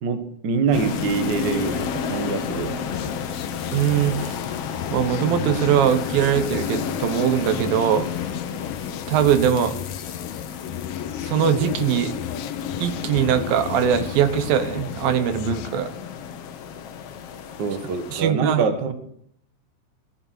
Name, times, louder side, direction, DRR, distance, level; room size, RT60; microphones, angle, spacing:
voice 1, 0.0-2.8 17.6-18.9, right 5 dB, 60° right, 8 dB, 1.1 m, -25 dB
sound 1, 0.7-18.3, left 7 dB, 70° left, 1.4 m, -31 dB
sound 2, 2.9-15.7, left 11 dB, 85° left, 1.6 m, -36 dB
voice 2, 3.7-4.4 4.9-8.1 9.1-9.7 11.2-12.1 12.8-15.9 18.1-18.7, right 9 dB, 75° right, 10 dB, 2.8 m, -21 dB
18.0 x 11.0 x 6.4 m, 0.68 s
omnidirectional pair, 4.2 m